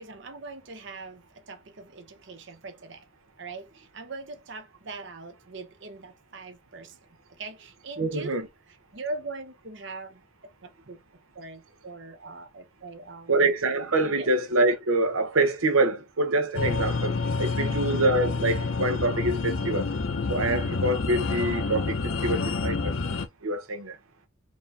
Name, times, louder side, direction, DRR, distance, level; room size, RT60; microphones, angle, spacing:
voice 1, 0.0-3.0 3.4-7.0 7.4-11.0 11.3-13.3 14.2-14.3 17.5-18.0, right 3 dB, 60° right, 0.9 m, -41 dB
voice 2, 8.0-8.5 13.3-19.9 20.3-22.9 23.4-24.0, right 2 dB, 85° right, 0.9 m, -25 dB
sound 1, 16.5-23.3, left 4 dB, 70° left, 0.8 m, -28 dB
4.6 x 2.8 x 3.4 m
head